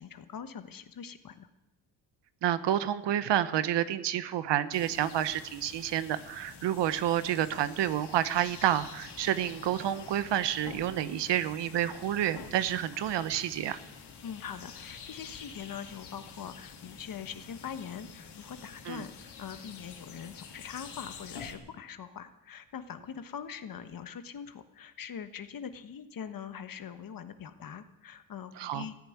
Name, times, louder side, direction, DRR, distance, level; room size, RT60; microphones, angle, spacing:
voice 1, 0.0-1.5 14.2-28.9, left 7 dB, 55° left, 10 dB, 1.4 m, -43 dB
voice 2, 2.4-13.8 18.9-19.0 28.6-28.8, right 11 dB, 80° right, 13 dB, 1.0 m, -29 dB
sound 1, 4.7-21.5, left 6 dB, 70° left, 3.0 m, -48 dB
14.5 x 10.5 x 9.5 m, 0.96 s
cardioid pair, 105°, 42 cm